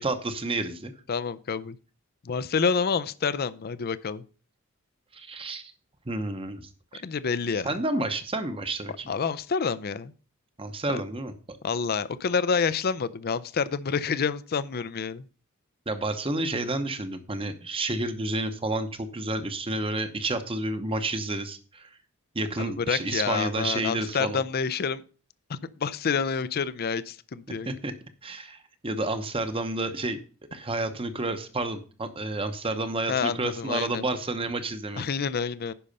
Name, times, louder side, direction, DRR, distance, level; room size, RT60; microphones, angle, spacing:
voice 1, 0.0-0.9 5.1-5.6 6.1-7.0 7.6-9.1 10.6-11.6 15.9-21.9 22.3-24.4 27.5-27.9 28.2-30.2 30.5-35.0, right 2 dB, 25° right, 9 dB, 0.9 m, -30 dB
voice 2, 1.1-1.8 2.2-4.2 7.0-7.7 9.1-10.1 10.9-11.0 11.6-15.3 22.6-25.0 25.5-27.7 33.1-34.1 35.0-35.7, left 5 dB, 45° left, 17 dB, 0.5 m, -28 dB
10.0 x 5.6 x 5.3 m, 0.39 s
head